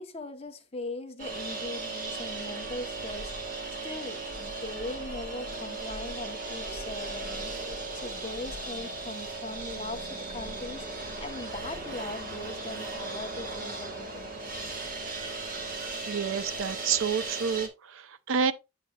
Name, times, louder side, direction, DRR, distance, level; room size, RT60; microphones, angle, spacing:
voice 1, 0.0-3.6 3.8-14.3, left 2 dB, 30° left, 0.9 m, -40 dB
sound 1, 1.2-17.7, right 3 dB, 40° right, 1.4 m, -37 dB
voice 2, 16.1-18.5, right 6 dB, 75° right, 0.5 m, -29 dB
7.6 x 7.2 x 2.3 m
head